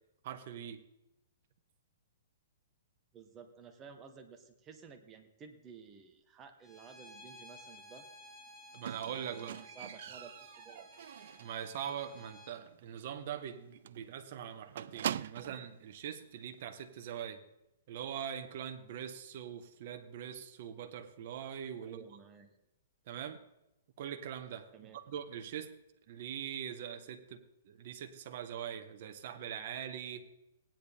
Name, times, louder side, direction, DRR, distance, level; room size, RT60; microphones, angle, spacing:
voice 1, 0.2-0.8 8.7-9.6 11.4-17.4 17.9-22.0 23.1-23.4 24.0-25.7 26.1-30.3, right 9 dB, 45° right, 7 dB, 1.4 m, -42 dB
voice 2, 3.1-8.1 9.2-10.3 10.6-10.9 21.8-22.5 24.7-25.0, right 6 dB, 15° right, 6 dB, 1.3 m, -53 dB
Bowed string instrument, 6.6-12.5, left 1 dB, 5° left, 1.6 m, -55 dB
Squeak, 8.9-11.6 12.0-12.4 12.6-12.7 13.1-13.2 13.5-13.6 13.9-15.7 16.5-16.6, right 10 dB, 60° right, 0.4 m, -42 dB
16.5 x 10.5 x 3.6 m, 0.90 s
hypercardioid pair, 165°, 0 cm